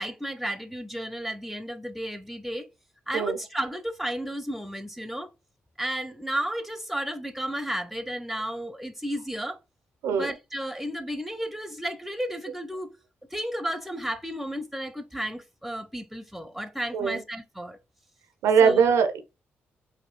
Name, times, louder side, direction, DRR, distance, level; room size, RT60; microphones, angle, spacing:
voice 1, 0.0-2.7 3.1-5.3 5.8-9.6 10.1-13.0 13.3-17.8 18.6-18.8, right 1 dB, ahead, 0.7 m, -33 dB
voice 2, 18.4-19.2, right 6 dB, 90° right, 0.6 m, -21 dB
4.2 x 2.7 x 2.4 m
cardioid pair, 65°, 5 cm